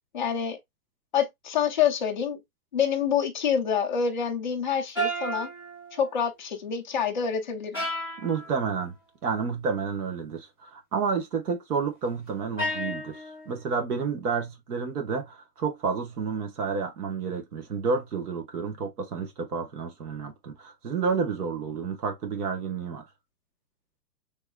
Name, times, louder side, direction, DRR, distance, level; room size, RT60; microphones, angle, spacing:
voice 1, 0.1-0.6 1.1-2.4 2.7-5.5 5.9-7.8, left 7 dB, 35° left, 0.4 m, -27 dB
sound 1, 5.0-6.1 7.7-8.6 12.6-13.6, right 1 dB, 5° right, 0.9 m, -32 dB
voice 2, 8.2-8.9 9.2-23.0, right 5 dB, 65° right, 1.3 m, -30 dB
3.6 x 3.0 x 2.2 m
hypercardioid pair, 175°, 48 cm